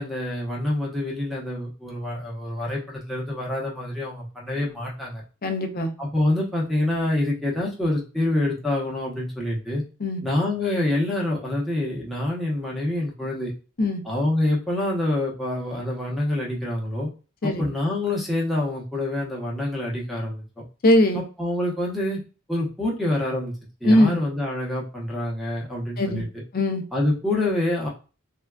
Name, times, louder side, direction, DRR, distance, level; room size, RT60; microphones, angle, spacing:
voice 1, 0.0-5.2 6.0-9.8 10.2-13.5 14.0-17.1 17.4-20.4 21.1-22.2 22.5-23.5 23.8-26.3 26.9-27.9, left 1 dB, ahead, -3 dB, 0.9 m, -26 dB
voice 2, 5.4-5.9 10.0-10.2 13.8-14.0 17.4-17.7 20.8-21.2 23.8-24.2 26.0-26.2 26.5-26.8, left 1 dB, 45° left, 5 dB, 0.5 m, -20 dB
3.4 x 2.3 x 2.3 m, 0.34 s
head